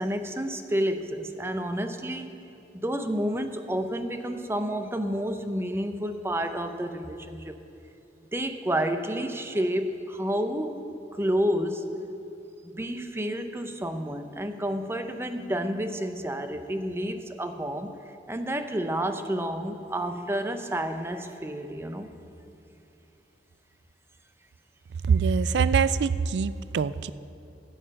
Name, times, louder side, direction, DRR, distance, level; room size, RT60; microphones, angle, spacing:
voice 1, 0.0-2.3 2.7-7.6 8.3-10.8 11.1-11.9 12.6-17.9 18.3-22.1, equal, 15° right, 7 dB, 0.6 m, -30 dB
voice 2, 25.1-27.1, right 6 dB, 70° right, 17 dB, 0.3 m, -24 dB
12.0 x 5.6 x 8.7 m, 2.7 s
head